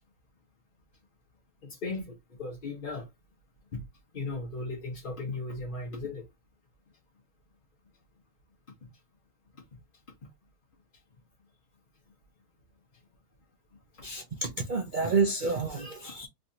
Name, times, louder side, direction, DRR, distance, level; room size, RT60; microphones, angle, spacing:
voice 1, 1.6-3.1 3.7-3.9 4.1-6.2 8.8-8.9 9.7-9.8 10.2-10.3 13.9-14.1, left 3 dB, 40° left, 0.9 m, -37 dB
voice 2, 14.0-16.3, right 4 dB, 80° right, 0.4 m, -29 dB
3.2 x 2.9 x 2.7 m
omnidirectional pair, 1.7 m